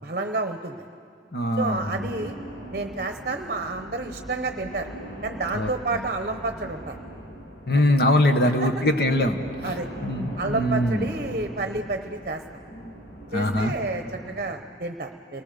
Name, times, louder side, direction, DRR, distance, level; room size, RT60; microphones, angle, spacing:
voice 1, 0.0-0.9 1.6-2.3 2.7-4.9 5.2-7.0 7.7-7.9 8.4-8.8 9.6-9.9 10.4-12.4 13.3-15.4, right 3 dB, 50° right, 6 dB, 0.8 m, -30 dB
voice 2, 1.3-2.0 5.5-5.7 7.7-9.7 10.0-11.1 13.3-13.7, left 1 dB, 60° left, 6 dB, 1.4 m, -22 dB
sound 1, 1.6-14.5, right 1 dB, 80° left, 4.1 m, -40 dB
29.0 x 19.5 x 6.7 m, 2.3 s
head